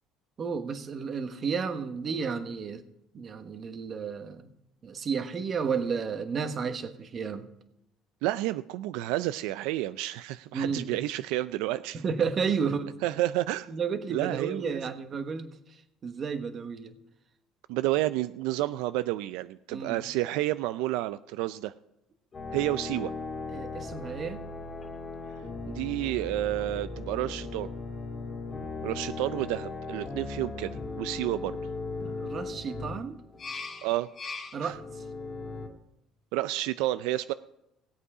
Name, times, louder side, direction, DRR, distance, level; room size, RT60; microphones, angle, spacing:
voice 1, 0.4-2.8 3.1-4.5 4.8-7.5 10.5-10.9 11.9-13.0 13.7-17.0 19.7-20.0 23.5-24.4 32.2-33.2 34.5-34.8, right 5 dB, 35° right, 9 dB, 1.2 m, -32 dB
voice 2, 8.2-12.0 13.0-13.7 14.1-14.8 17.7-21.7 22.5-23.1 25.7-27.7 28.8-31.6 33.8-34.1 34.6-34.7 36.3-37.3, right 16 dB, 85° right, 14 dB, 0.4 m, -30 dB
sound 1, 22.3-35.7, left 3 dB, 25° left, 2.2 m, -38 dB
17.5 x 8.2 x 4.9 m, 0.85 s
cardioid pair, 140°, 0 cm